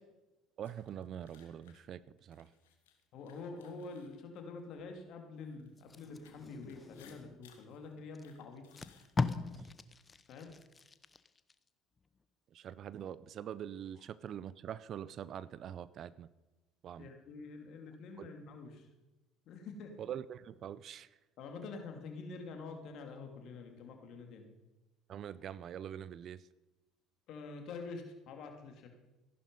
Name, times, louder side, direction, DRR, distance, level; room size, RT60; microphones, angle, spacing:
sound 1, 0.6-4.9 5.4-9.7, left 8 dB, 85° left, 1.7 m, -65 dB
voice 1, 0.6-2.5 12.5-16.3 16.8-17.1 18.2-18.3 20.0-21.1 25.1-26.4, right 9 dB, 50° right, 19 dB, 0.5 m, -44 dB
voice 2, 3.1-8.6 10.3-10.5 17.0-18.9 19.5-19.9 21.4-24.4 27.3-28.9, left 4 dB, 60° left, 4 dB, 2.5 m, -47 dB
Packing tape duct tape, 5.8-7.4 8.1-8.2 8.6-11.6 12.0-12.2, left 4 dB, 25° left, 0.8 m, -40 dB
14.5 x 11.0 x 5.4 m, 1.1 s
hypercardioid pair, 65°, 0 cm